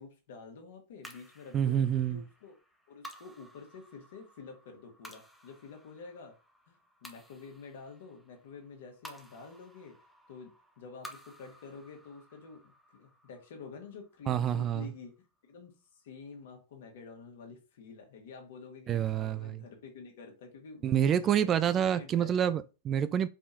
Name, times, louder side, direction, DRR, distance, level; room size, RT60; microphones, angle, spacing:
voice 1, 0.0-2.6 2.9-6.3 6.7-9.9 10.3-15.1 15.5-22.3, left 4 dB, 65° left, 1.7 m, -49 dB
sound 1, 1.0-15.5, equal, ahead, 0.8 m, -55 dB
voice 2, 1.5-2.2 14.3-14.9 18.9-19.6 20.8-23.3, right 9 dB, 30° right, 0.3 m, -28 dB
4.9 x 3.5 x 2.8 m
hypercardioid pair, 105°, 0 cm